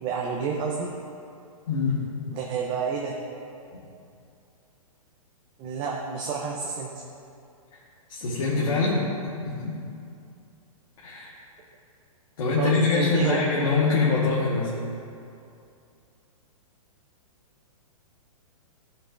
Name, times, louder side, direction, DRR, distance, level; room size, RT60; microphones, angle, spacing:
voice 1, 0.0-0.9 2.3-3.2 5.6-7.0 12.6-13.4, right 5 dB, 25° right, -1 dB, 0.6 m, -29 dB
voice 2, 1.7-2.0 3.7-3.8 7.7-7.8 8.1-9.0 9.4-9.8 11.0-11.4 12.4-14.7, left 4 dB, 70° left, -7 dB, 1.5 m, -24 dB
13.5 x 5.4 x 2.6 m, 2.5 s
hypercardioid pair, 140°, 18 cm